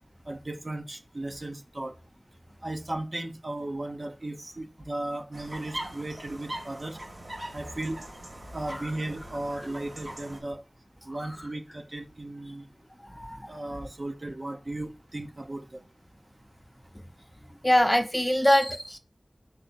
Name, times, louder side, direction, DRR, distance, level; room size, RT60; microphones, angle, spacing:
voice 1, 0.3-1.9 2.6-7.0 7.5-8.0 8.5-10.6 11.1-12.7 13.5-15.8, right 1 dB, 50° right, 0.9 m, -36 dB
sound 1, 5.3-10.4, right 1 dB, 70° right, 2.9 m, -41 dB
voice 2, 17.6-19.0, left 1 dB, 10° left, 0.8 m, -23 dB
5.3 x 4.0 x 4.6 m
wide cardioid pair, 50°, 0 cm